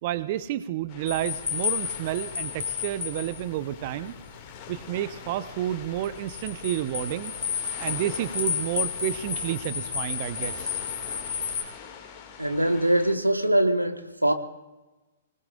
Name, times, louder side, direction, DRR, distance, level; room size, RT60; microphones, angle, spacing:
voice 1, 0.0-4.1 4.7-7.3 7.8-10.8, right 12 dB, 40° right, 15 dB, 0.6 m, -30 dB
sound 1, 0.9-13.1, left 7 dB, 30° left, 2.2 m, -44 dB
sound 2, 1.1-11.6, left 7 dB, 55° left, 1.9 m, -32 dB
voice 2, 12.4-14.3, right 1 dB, 85° right, 8 dB, 1.2 m, -23 dB
25.0 x 19.0 x 2.5 m, 1.1 s
figure-of-eight pair, 115°, 0 cm